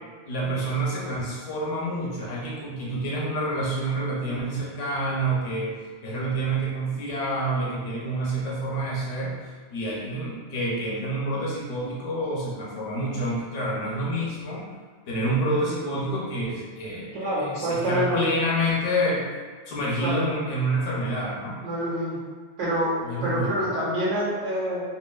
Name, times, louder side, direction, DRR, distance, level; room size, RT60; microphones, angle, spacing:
voice 1, 0.3-5.7 6.0-9.4 9.7-14.7 15.1-19.2 19.7-21.6 23.0-23.7, right 1 dB, 85° left, -4 dB, 1.1 m, -28 dB
voice 2, 17.1-18.3 20.0-20.2 21.6-22.2 22.6-22.9 23.2-24.8, equal, 90° right, -7 dB, 1.3 m, -26 dB
2.9 x 2.8 x 2.2 m, 1.5 s
omnidirectional pair, 1.2 m